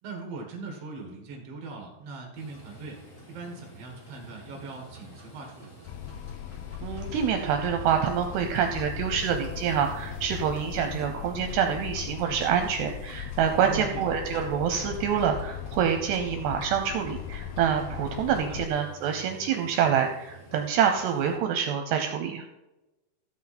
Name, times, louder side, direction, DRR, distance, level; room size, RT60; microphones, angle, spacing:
voice 1, 0.0-3.0 3.3-5.9 13.6-14.0 18.4-18.6, right 4 dB, 60° right, 1 dB, 1.7 m, -40 dB
Livestock farm animals working animals, 2.3-21.4, right 1 dB, 20° left, 3.2 m, -49 dB
sound 1, 5.9-18.7, left 11 dB, 80° left, 2.3 m, -38 dB
voice 2, 6.8-22.5, right 8 dB, 75° right, 5 dB, 2.7 m, -26 dB
15.5 x 8.6 x 4.3 m, 1.0 s
omnidirectional pair, 5.3 m